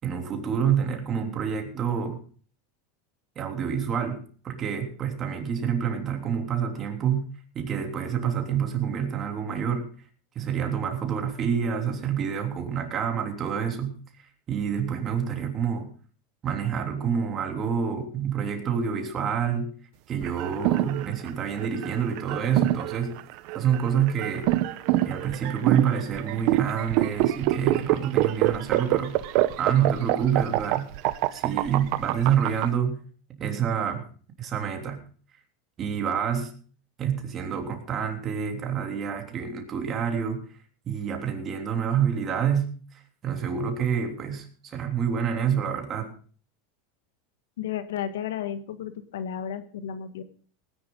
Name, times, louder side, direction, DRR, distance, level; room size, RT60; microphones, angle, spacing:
voice 1, 0.0-2.2 3.3-7.3 7.5-9.9 10.3-15.9 16.4-19.7 20.1-23.2 23.5-24.5 25.0-29.2 29.6-30.9 31.3-33.0 33.4-34.0 34.4-35.0 35.8-36.5 37.0-40.4 40.9-42.7 43.2-46.1, right 8 dB, 30° right, 3 dB, 3.2 m, -27 dB
sound 1, 20.2-32.7, right 16 dB, 55° right, 1.0 m, -25 dB
voice 2, 47.6-50.2, left 9 dB, 90° left, 10 dB, 1.7 m, -33 dB
19.0 x 10.5 x 3.9 m, 0.42 s
supercardioid pair, 130°, 0 cm